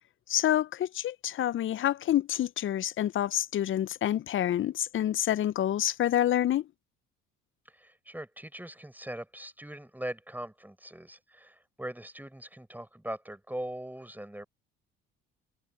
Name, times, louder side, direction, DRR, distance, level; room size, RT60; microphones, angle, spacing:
voice 1, 0.3-6.7, left 12 dB, 45° left, 0.6 m, -28 dB
voice 2, 7.7-14.5, right 1 dB, 5° right, 6.7 m, -41 dB
hypercardioid pair, 60°, 29 cm